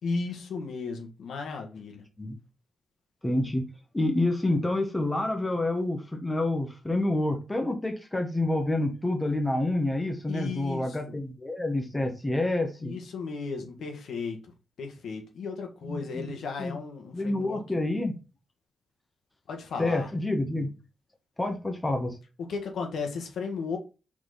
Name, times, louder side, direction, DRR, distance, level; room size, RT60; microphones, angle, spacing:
voice 1, 0.0-2.0 10.3-11.2 12.8-14.4 14.8-17.6 19.5-20.1 22.5-23.8, left 4 dB, 80° left, 1.7 m, -35 dB
voice 2, 3.2-3.6 3.9-12.9 15.9-16.3 16.6-16.8 17.1-18.1 19.8-20.7 21.4-22.2, left 2 dB, 15° left, 1.4 m, -28 dB
5.9 x 4.3 x 4.0 m
wide cardioid pair, 125°, 0 cm